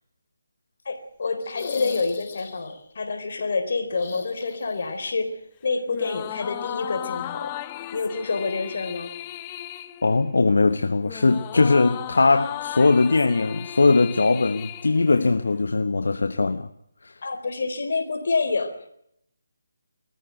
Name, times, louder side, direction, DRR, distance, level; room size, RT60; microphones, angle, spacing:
voice 1, 0.9-5.3 5.6-7.5 7.9-9.1 17.2-18.9, left 4 dB, 60° left, 4.0 m, -27 dB
sound 1, 1.4-2.8 3.9-5.1 5.4-5.5 7.1-7.2, left 6 dB, 40° left, 2.7 m, -38 dB
sound 2, 5.9-15.6, left 14 dB, 20° left, 0.8 m, -36 dB
voice 2, 10.0-16.7 17.0-17.2, left 3 dB, 75° left, 1.1 m, -20 dB
22.0 x 14.5 x 9.2 m
figure-of-eight pair, 160°, 0 cm